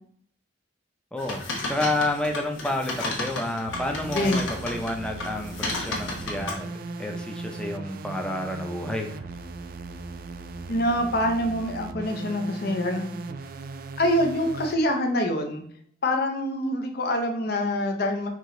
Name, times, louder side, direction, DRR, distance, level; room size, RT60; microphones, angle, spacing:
voice 1, 1.1-6.7 7.0-9.2, left 1 dB, 5° left, 3 dB, 0.5 m, -30 dB
sound 1, 1.2-4.9 5.2-6.5, left 2 dB, 85° left, 1.3 m, -32 dB
sound 2, 3.7-14.8, right 3 dB, 50° right, 0.3 m, -38 dB
voice 2, 4.1-4.4 10.7-13.1 14.0-15.6 16.0-18.3, left 1 dB, 55° left, 3 dB, 0.6 m, -25 dB
4.8 x 2.9 x 3.7 m, 0.64 s
head